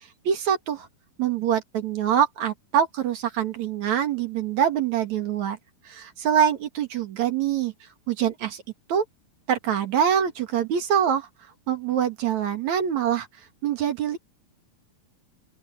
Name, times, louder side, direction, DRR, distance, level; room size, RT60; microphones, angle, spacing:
voice 1, 0.2-0.9 1.2-5.6 5.9-7.7 8.1-8.6 8.9-9.0 9.5-11.3 11.7-13.3 13.6-14.2, right 9 dB, 55° right, 2.8 m, -24 dB
open air
omnidirectional pair, 4.3 m